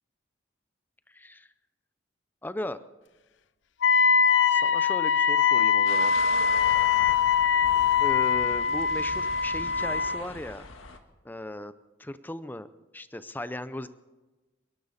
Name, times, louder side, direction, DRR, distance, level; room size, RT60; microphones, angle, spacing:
voice 1, 1.1-1.5 2.4-2.8 4.5-6.1 8.0-10.7 11.2-11.7 12.0-12.7 12.9-13.9, left 1 dB, 10° left, 12 dB, 0.5 m, -37 dB
Wind instrument woodwind instrument, 3.8-10.2, left 7 dB, 65° left, 0.6 m, -23 dB
sound 1, 5.9-11.0, left 3 dB, 90° left, 1.5 m, -41 dB
29.5 x 11.5 x 4.2 m, 1.1 s
head